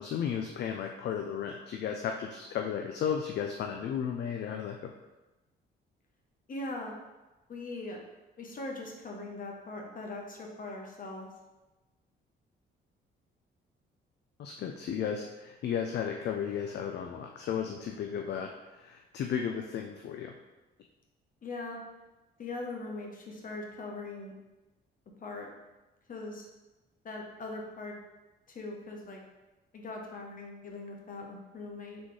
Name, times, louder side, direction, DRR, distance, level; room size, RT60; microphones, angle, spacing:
voice 1, 0.0-4.9 14.4-20.3, left 8 dB, 60° left, 3 dB, 0.4 m, -34 dB
voice 2, 6.5-6.9 7.5-8.0 8.4-11.3 21.4-21.8 22.4-24.3 25.2-25.5 26.1-26.5 27.0-28.0 28.5-29.2 29.7-32.0, left 2 dB, 45° left, 1 dB, 0.9 m, -40 dB
4.0 x 3.6 x 3.2 m, 1.1 s
cardioid pair, 90°, 20 cm